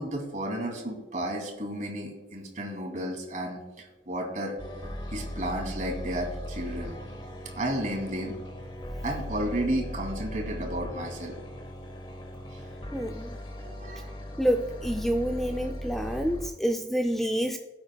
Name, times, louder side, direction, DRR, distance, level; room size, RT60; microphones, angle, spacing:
voice 1, 0.0-4.6 5.1-6.9 7.6-8.3 9.0-11.3 12.5-12.6 13.6-14.4, right 1 dB, 45° right, 1 dB, 2.7 m, -33 dB
sound 1, 4.6-16.5, equal, 25° left, 1.1 m, -38 dB
voice 2, 12.9-13.3 14.4-17.6, equal, ahead, 4 dB, 0.4 m, -28 dB
18.5 x 8.8 x 2.3 m, 1.1 s
head